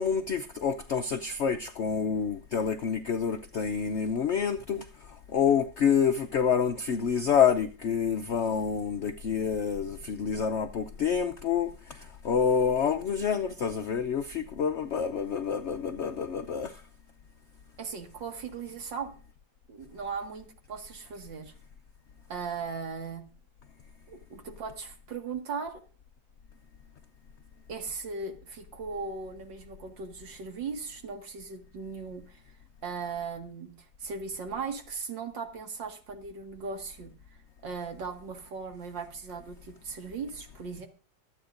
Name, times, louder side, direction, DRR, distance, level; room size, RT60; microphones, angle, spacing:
voice 1, 0.0-16.8, left 7 dB, 60° left, 0.7 m, -28 dB
voice 2, 17.8-19.1 19.7-21.5 22.3-23.2 24.1-25.8 27.7-32.4 32.8-37.1 37.6-40.9, right 5 dB, 85° right, 2.6 m, -38 dB
24.5 x 8.8 x 2.6 m
omnidirectional pair, 1.9 m